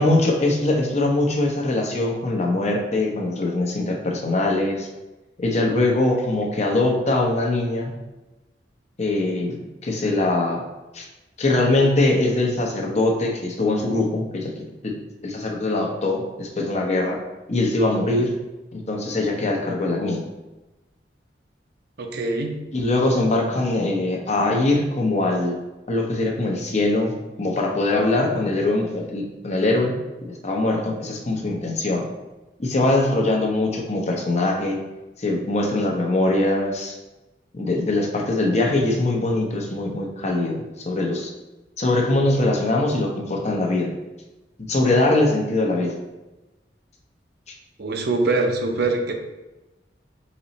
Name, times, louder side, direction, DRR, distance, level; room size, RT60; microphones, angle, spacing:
voice 1, 0.0-4.9 5.4-7.9 9.0-9.6 9.8-10.6 10.9-11.1 11.4-14.9 15.2-17.2 17.5-18.3 18.7-20.2 22.7-25.6 25.9-27.1 27.4-29.9 30.2-32.1 32.6-34.8 35.2-37.0 37.5-41.3 41.8-43.9 44.6-45.9, left 2 dB, 40° left, 0 dB, 0.8 m, -22 dB
voice 2, 22.0-22.6 47.8-49.1, right 3 dB, 65° right, 4 dB, 0.6 m, -23 dB
4.1 x 3.0 x 4.0 m, 1.0 s
head